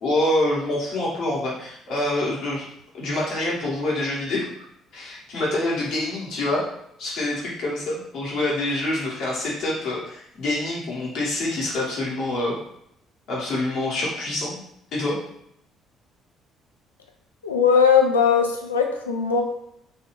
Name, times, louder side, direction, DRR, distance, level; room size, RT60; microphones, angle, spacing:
voice 1, 0.0-2.7 2.9-4.5 4.9-6.6 7.0-12.6 13.3-14.6 14.9-15.2, left 1 dB, 60° left, -6 dB, 1.1 m, -26 dB
voice 2, 17.4-19.4, left 6 dB, 85° left, 3 dB, 0.3 m, -19 dB
2.6 x 2.3 x 3.1 m, 0.74 s
figure-of-eight pair, 50°, 0 cm